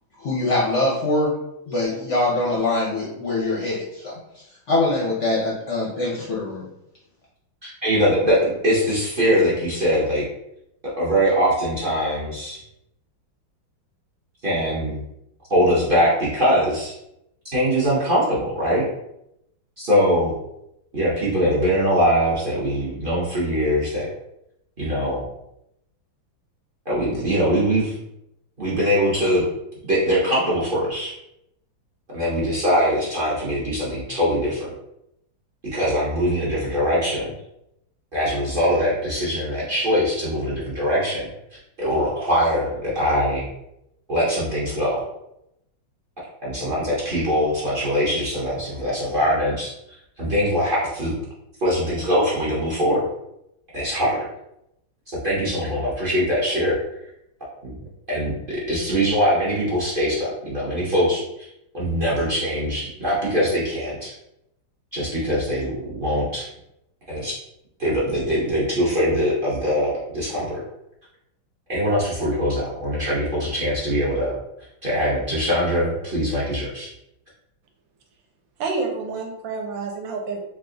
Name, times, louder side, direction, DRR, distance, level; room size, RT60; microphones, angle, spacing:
voice 1, 0.2-1.3 1.7-6.6, left 2 dB, 60° left, -5 dB, 0.7 m, -23 dB
voice 2, 7.6-10.2 11.0-12.6 14.4-15.0 15.5-16.9 17.5-18.9 19.8-20.3 20.9-24.1 24.8-25.2 26.8-27.9 28.6-29.4 29.9-31.1 32.1-34.7 35.7-37.3 38.1-41.3 41.8-43.5 44.1-45.0 46.4-49.7 50.2-51.2 51.6-53.1 53.7-54.2 55.1-56.8 57.6-57.8 58.1-61.5 61.7-64.1 64.9-66.5 67.1-67.3 67.8-70.6 71.7-74.4 74.8-76.9, equal, 45° right, -7 dB, 0.7 m, -22 dB
voice 3, 78.6-80.4, right 4 dB, 75° right, 2 dB, 1.3 m, -28 dB
3.6 x 2.3 x 3.7 m, 0.82 s
omnidirectional pair, 2.2 m